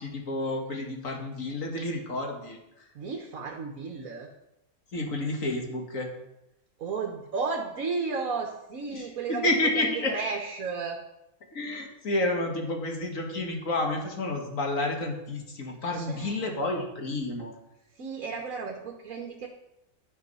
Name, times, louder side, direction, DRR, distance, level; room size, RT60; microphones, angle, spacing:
voice 1, 0.0-2.6 4.9-6.1 8.9-10.1 11.5-17.5, left 2 dB, 65° left, 2 dB, 2.1 m, -30 dB
voice 2, 2.9-4.3 6.8-9.5 9.8-11.0 15.9-16.6 18.0-19.5, right 4 dB, 70° right, 2 dB, 1.5 m, -33 dB
11.0 x 7.1 x 5.5 m, 0.88 s
omnidirectional pair, 1.5 m